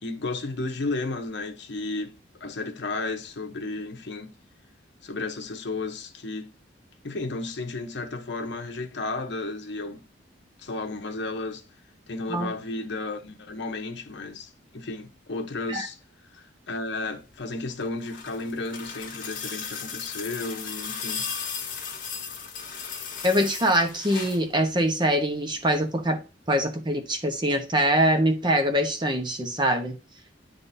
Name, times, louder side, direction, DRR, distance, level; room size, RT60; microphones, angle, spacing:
voice 1, 0.0-4.3 5.0-6.5 7.0-10.0 10.6-11.6 12.1-16.0 16.3-21.3, left 3 dB, 65° left, 0.9 m, -33 dB
sound 1, 17.7-24.5 25.8-25.9, left 6 dB, 50° left, 1.4 m, -36 dB
voice 2, 23.2-26.2 26.5-30.0, equal, 25° right, 1.0 m, -23 dB
9.6 x 3.8 x 2.7 m
head